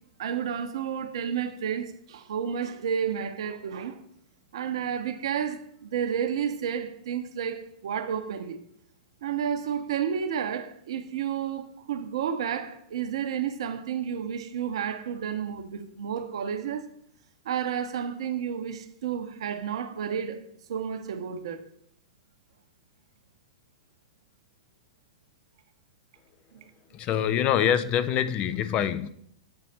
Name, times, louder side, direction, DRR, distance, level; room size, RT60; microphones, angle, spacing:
voice 1, 0.2-4.0 4.5-8.6 9.2-16.9 17.4-20.4 20.7-21.6, right 8 dB, 65° right, 0.8 m, -31 dB
voice 2, 26.9-29.1, left 9 dB, 35° left, 0.4 m, -25 dB
7.8 x 4.0 x 4.3 m
hypercardioid pair, 105°, 3 cm